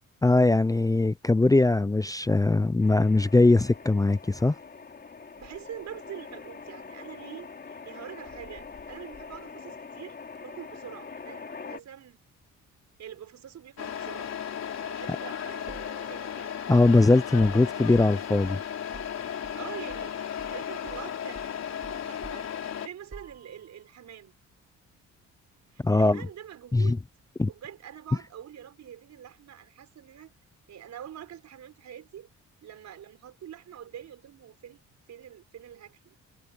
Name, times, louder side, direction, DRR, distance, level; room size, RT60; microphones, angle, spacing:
voice 1, 0.2-4.5 16.7-18.6 25.8-26.2 26.7-27.0 27.4-27.5, left 2 dB, 10° left, 0.6 m, -21 dB
sound 1, 2.8-11.8, left 5 dB, 35° left, 3.1 m, -44 dB
voice 2, 5.4-10.2 10.4-12.2 13.0-14.3 14.8-16.5 19.5-20.1 20.5-24.4 25.7-27.1 27.5-30.3 30.7-32.3 32.6-34.8 35.1-36.2, right 10 dB, 65° right, 5.2 m, -45 dB
Truck, 13.8-22.9, left 8 dB, 60° left, 4.0 m, -35 dB
sound 2, 15.7-20.1 20.4-20.6 20.9-23.8, right 3 dB, 25° right, 7.8 m, -49 dB
cardioid pair, 90°, 30 cm